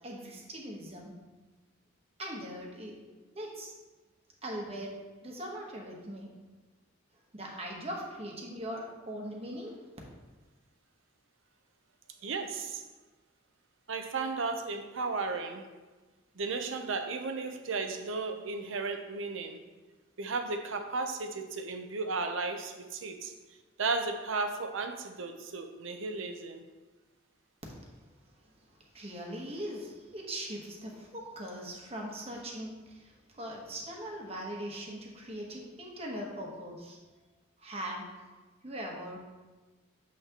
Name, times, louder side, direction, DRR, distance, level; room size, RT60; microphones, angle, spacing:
voice 1, 0.0-1.2 2.2-3.0 3.3-3.7 4.4-4.9 5.2-6.3 7.3-9.8 28.9-37.0 37.6-38.1 38.6-39.2, equal, 30° right, -1 dB, 1.1 m, -40 dB
voice 2, 12.2-12.8 13.9-15.6 16.4-19.6 20.2-23.3 23.8-26.6, right 3 dB, 70° right, 6 dB, 0.7 m, -34 dB
7.4 x 5.7 x 2.9 m, 1.3 s
head